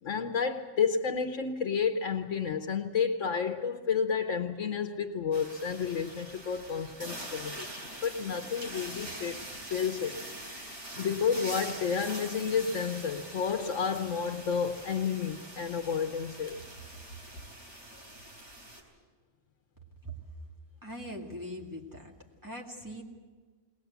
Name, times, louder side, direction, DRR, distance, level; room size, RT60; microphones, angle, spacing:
voice 1, 0.0-7.7 8.0-9.4 9.7-10.2 11.0-16.6, left 6 dB, 80° left, 6 dB, 1.3 m, -31 dB
sound 1, 5.3-18.8, right 1 dB, 70° right, 4.3 m, -44 dB
voice 2, 20.8-22.1 22.4-23.0, equal, 15° right, -1 dB, 2.3 m, -41 dB
21.5 x 19.0 x 8.1 m, 1.4 s
omnidirectional pair, 1.3 m